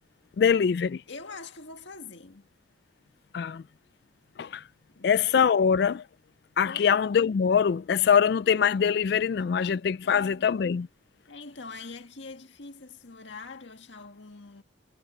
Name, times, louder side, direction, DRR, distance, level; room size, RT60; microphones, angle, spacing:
voice 1, 0.4-1.0 3.3-3.6 4.4-4.6 5.0-6.0 6.6-10.9, left 7 dB, 55° left, 0.3 m, -23 dB
voice 2, 1.1-2.5 4.9-5.3 6.6-7.0 10.0-10.5 11.3-14.6, left 3 dB, 70° left, 1.8 m, -44 dB
head